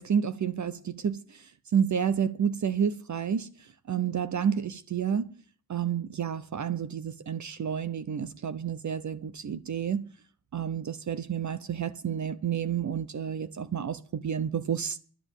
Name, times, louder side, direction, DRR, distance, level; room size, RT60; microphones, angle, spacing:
voice 1, 0.0-1.4 1.7-3.5 3.9-5.3 5.7-10.0 10.5-15.0, right 8 dB, 50° right, 0.8 m, -30 dB
11.5 x 9.4 x 8.3 m
wide cardioid pair, 170°, 39 cm